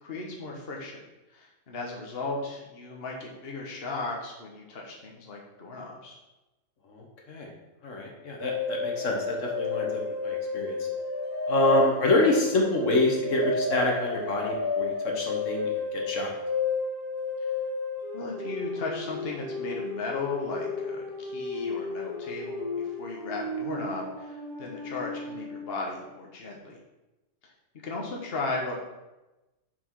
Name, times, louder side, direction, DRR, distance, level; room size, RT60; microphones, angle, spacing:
voice 1, 0.0-1.0 1.3-6.2 18.1-26.8 27.8-28.8, left 2 dB, 50° left, -1 dB, 1.4 m, -36 dB
voice 2, 6.9-7.5 7.8-10.9 11.5-16.3, left 1 dB, 80° left, 0 dB, 1.6 m, -27 dB
sound 1, 8.4-25.8, left 4 dB, 20° right, 1.5 m, -32 dB
6.3 x 6.1 x 4.6 m, 1.0 s
omnidirectional pair, 1.3 m